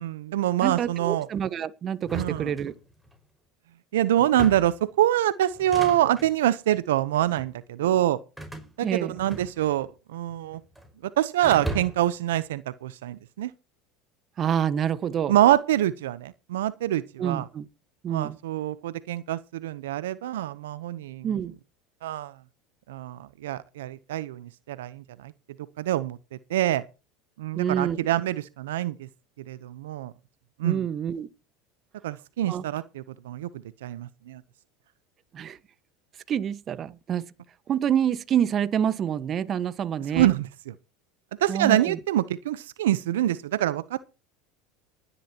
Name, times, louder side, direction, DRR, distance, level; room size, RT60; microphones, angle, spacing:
voice 1, 0.0-1.3 2.1-2.5 3.9-8.2 8.8-10.6 11.2-13.5 15.3-17.5 18.1-21.3 22.0-22.3 22.9-25.3 25.8-26.2 26.5-26.8 27.4-29.1 29.5-30.1 30.6-30.8 32.0-33.5 33.8-34.4 40.1-40.7 41.4-44.0, right 13 dB, 85° right, 0.8 m, -25 dB
voice 2, 0.6-2.7 8.8-9.2 14.4-15.3 17.2-17.7 18.0-18.4 21.2-21.5 27.5-28.0 30.6-31.3 32.5-32.6 35.3-35.6 36.3-37.2 37.7-40.3 41.5-42.0, right 9 dB, 40° right, 1.4 m, -27 dB
sound 1, 2.0-3.2 4.2-4.8 5.5-6.3 7.1-7.5 8.4-9.9 10.1-10.9 11.4-12.2, right 2 dB, 5° right, 5.2 m, -37 dB
20.0 x 11.0 x 2.9 m
supercardioid pair, 105°, 0 cm